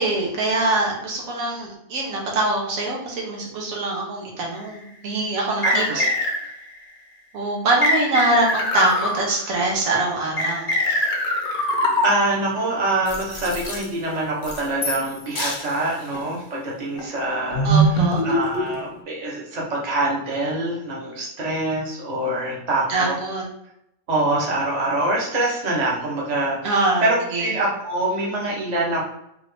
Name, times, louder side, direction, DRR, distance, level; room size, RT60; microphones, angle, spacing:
voice 1, 0.0-6.0 7.3-11.1 17.6-18.3 22.9-23.4 26.6-27.5, right 2 dB, 90° right, -2 dB, 1.4 m, -24 dB
sound 1, 4.6-4.7 5.6-6.7 7.8-9.6 10.4-12.4 13.1-13.8 14.4-15.1 15.4-15.6 16.1-16.3 17.0-18.9, equal, 50° left, 0.8 m, -23 dB
voice 2, 5.6-6.1 12.0-17.7 18.0-23.1 24.1-26.7 27.0-29.1, right 2 dB, 35° right, -3 dB, 1.0 m, -25 dB
3.5 x 2.6 x 3.3 m, 0.79 s
omnidirectional pair, 1.4 m